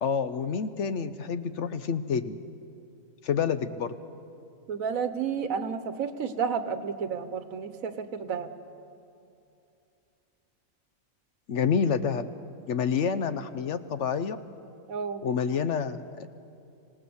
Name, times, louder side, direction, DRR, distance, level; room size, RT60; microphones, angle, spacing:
voice 1, 0.0-2.4 3.2-3.9 11.5-12.3 12.7-14.4 15.2-16.3, left 6 dB, 65° left, 12 dB, 1.0 m, -28 dB
voice 2, 4.7-8.5 14.9-15.2, right 6 dB, 90° right, 10 dB, 1.5 m, -31 dB
26.5 x 17.5 x 7.1 m, 2.7 s
omnidirectional pair, 1.4 m